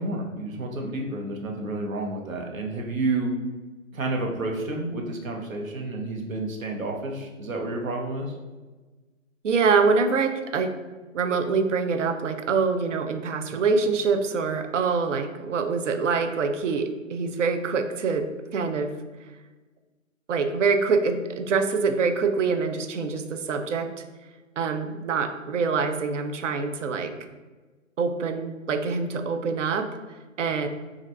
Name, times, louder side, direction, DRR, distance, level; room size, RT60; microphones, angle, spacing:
voice 1, 0.0-3.3 3.9-8.4, right 2 dB, 90° right, 1 dB, 0.9 m, -30 dB
voice 2, 9.4-10.7 11.1-18.9 20.3-23.9 24.6-27.1 28.0-29.9 30.4-30.7, right 5 dB, 65° right, 7 dB, 0.5 m, -25 dB
2.7 x 2.5 x 3.2 m, 1.3 s
hypercardioid pair, 165°, 39 cm